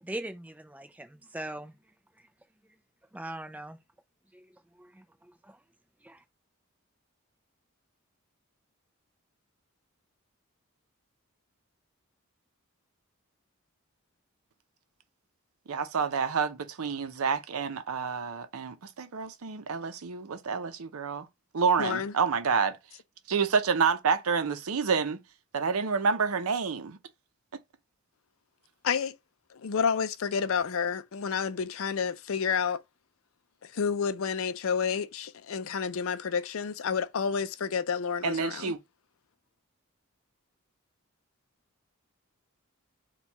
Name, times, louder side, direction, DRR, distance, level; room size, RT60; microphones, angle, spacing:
voice 1, 0.0-1.7 3.1-3.8 4.3-4.4 4.8-5.0 5.4-5.6 6.0-6.2, right 1 dB, 5° right, 0.4 m, -40 dB
voice 2, 15.7-21.3 21.5-22.8 23.3-25.2 25.5-27.0 38.2-38.8, right 5 dB, 80° right, 0.6 m, -28 dB
voice 3, 21.8-22.1 28.8-29.2 29.5-32.8 33.7-38.7, left 6 dB, 70° left, 0.4 m, -30 dB
4.5 x 2.3 x 4.0 m
head